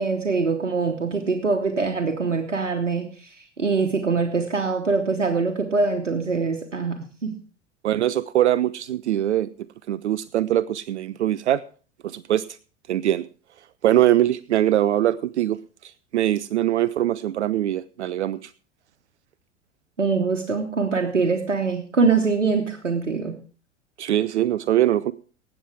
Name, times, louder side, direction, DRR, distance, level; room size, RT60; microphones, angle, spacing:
voice 1, 0.0-7.4 20.0-23.4, right 4 dB, 85° right, 4 dB, 1.3 m, -23 dB
voice 2, 7.8-9.5 9.9-11.6 12.0-12.4 12.9-13.3 13.8-15.6 15.8-18.5 24.0-25.1, right 12 dB, 70° right, 16 dB, 0.6 m, -22 dB
18.0 x 7.4 x 4.8 m, 0.38 s
figure-of-eight pair, 85°, 36 cm